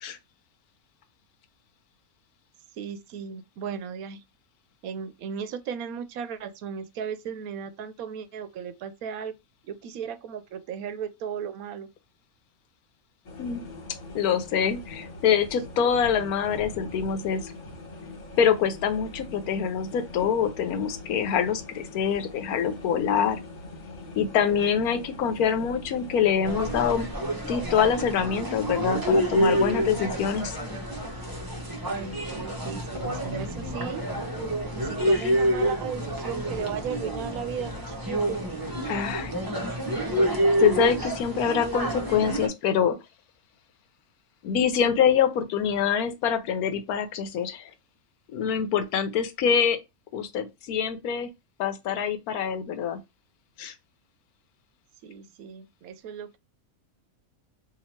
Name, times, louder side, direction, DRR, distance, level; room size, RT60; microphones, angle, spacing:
voice 1, 2.8-4.2 4.8-9.3 9.7-11.9 31.9-34.1 34.7-38.4 55.0-56.4, right 7 dB, 75° right, 1.0 m, -36 dB
sound 1, 13.2-27.1, left 2 dB, 70° left, 1.5 m, -42 dB
voice 2, 14.1-17.5 18.4-23.4 24.2-27.1 27.4-30.6 38.9-39.3 40.6-43.0 44.4-47.6 48.3-49.8 50.1-51.3 51.6-53.0 53.6-53.7, left 7 dB, 85° left, 1.2 m, -25 dB
sound 2, 26.4-42.5, equal, 20° right, 0.6 m, -28 dB
2.9 x 2.8 x 4.2 m
omnidirectional pair, 1.5 m